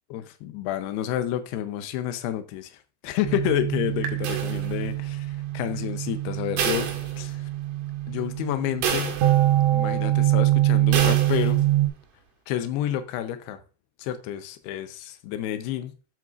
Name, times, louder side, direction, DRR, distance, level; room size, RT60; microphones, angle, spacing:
voice 1, 0.1-6.9 7.2-7.5 8.1-9.2 9.7-11.7 12.5-13.6 14.0-16.0, left 11 dB, 80° left, 2.8 m, -30 dB
sound 1, 3.2-11.9, right 15 dB, 90° right, 1.5 m, -24 dB
sound 2, 4.2-5.1 6.6-7.7 8.1-8.2 8.8-9.7 10.9-11.7, right 8 dB, 70° right, 3.2 m, -29 dB
9.4 x 7.4 x 2.5 m
omnidirectional pair, 4.9 m